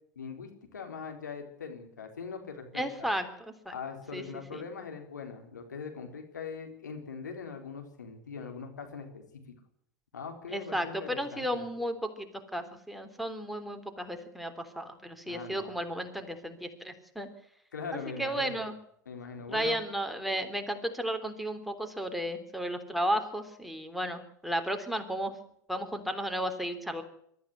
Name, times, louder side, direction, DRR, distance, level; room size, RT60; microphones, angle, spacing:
voice 1, 0.2-3.1 3.7-9.6 10.1-11.6 15.3-15.8 17.7-18.6 19.1-19.8, left 5 dB, 90° left, 4 dB, 4.0 m, -41 dB
voice 2, 2.7-3.7 4.1-4.2 4.5-4.6 10.5-17.3 18.2-18.7 19.5-25.4 25.7-27.0, equal, ahead, 5 dB, 3.4 m, -34 dB
22.5 x 13.5 x 9.6 m, 0.72 s
hypercardioid pair, 85°, 9 cm